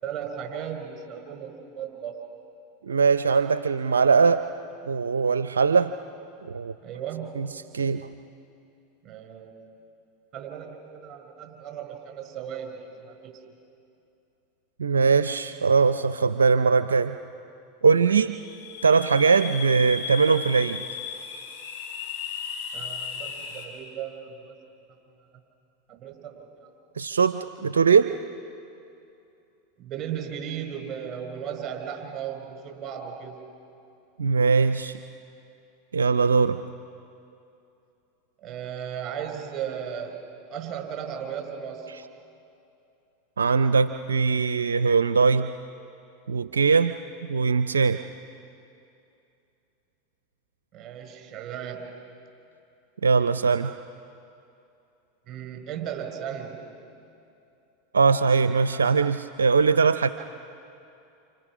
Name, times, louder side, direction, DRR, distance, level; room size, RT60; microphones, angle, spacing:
voice 1, 0.0-2.1 6.8-7.4 9.0-9.5 10.3-13.3 22.7-24.5 25.9-26.7 29.8-33.4 38.4-40.2 40.5-41.9 50.7-51.9 55.3-56.6, right 8 dB, 40° right, 4 dB, 5.5 m, -36 dB
voice 2, 2.8-4.5 4.9-5.9 6.4-6.7 7.4-7.5 7.7-8.1 14.8-17.2 17.8-18.3 18.8-20.8 27.0-28.1 34.2-35.0 35.9-36.6 43.4-45.5 46.3-47.0 47.3-48.0 53.0-53.7 57.9-60.1, right 5 dB, 90° right, 11 dB, 0.5 m, -21 dB
sound 1, 18.3-23.7, left 6 dB, 60° left, 6.4 m, -35 dB
29.0 x 28.0 x 6.2 m, 2.7 s
hypercardioid pair, 95°, 0 cm